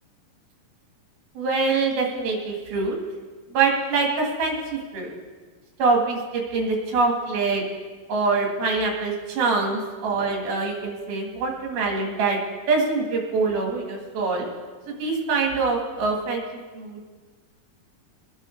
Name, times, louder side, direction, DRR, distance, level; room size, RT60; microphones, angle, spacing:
voice 1, 1.4-3.0 3.5-5.1 5.8-7.6 8.1-12.4 12.7-14.4 14.9-16.4 16.7-17.1, right 4 dB, 80° right, 0 dB, 4.2 m, -24 dB
23.0 x 10.5 x 3.8 m, 1.4 s
omnidirectional pair, 4.3 m